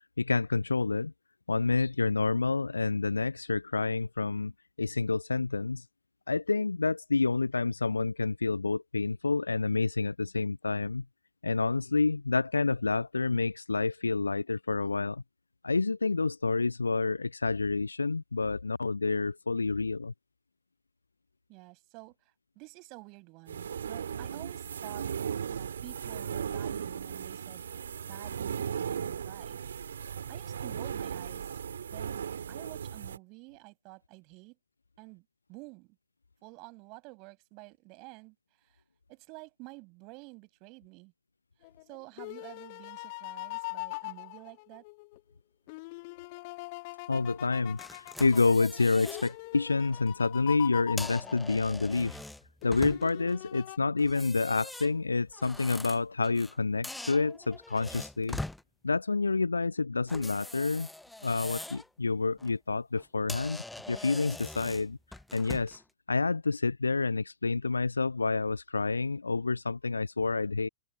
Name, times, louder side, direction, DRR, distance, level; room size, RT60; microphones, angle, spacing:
voice 1, 0.2-1.1 1.5-4.5 4.8-5.8 6.3-11.0 11.4-15.2 15.6-20.1 47.1-52.2 52.6-58.4 58.8-60.9 61.2-65.0 65.3-65.8 66.1-70.7, left 3 dB, 80° left, 0.3 m, -28 dB
voice 2, 21.5-22.2 22.6-25.1 25.5-27.7 28.0-29.6 30.3-31.5 31.9-32.2 32.5-34.6 35.0-36.0 36.4-38.8 39.1-41.1 41.9-44.8, right 28 dB, 45° right, 7.3 m, -50 dB
sound 1, 23.5-33.2, right 8 dB, 70° right, 3.7 m, -37 dB
sound 2, 41.6-45.2 45.7-51.9 52.6-53.8, left 25 dB, 50° left, 1.6 m, -42 dB
sound 3, 47.8-49.3 49.8-50.0 50.8-53.3 54.0-56.6 56.8-58.6 60.1-61.9 62.3-62.5 63.0-63.1 63.3-65.8, left 2 dB, 5° left, 0.9 m, -43 dB
open air
figure-of-eight pair, 90°, 0 cm